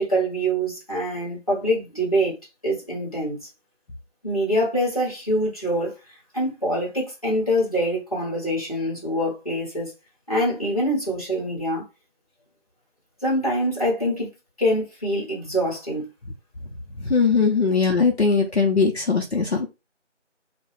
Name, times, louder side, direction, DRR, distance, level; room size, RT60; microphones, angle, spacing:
voice 1, 0.0-2.4 2.6-3.4 4.2-6.0 6.3-9.9 10.3-11.8 13.2-14.3 14.6-16.1, equal, 30° left, 1.0 m, -24 dB
voice 2, 17.0-19.7, left 5 dB, 60° left, 0.7 m, -20 dB
2.2 x 2.2 x 3.2 m
figure-of-eight pair, 170°, 36 cm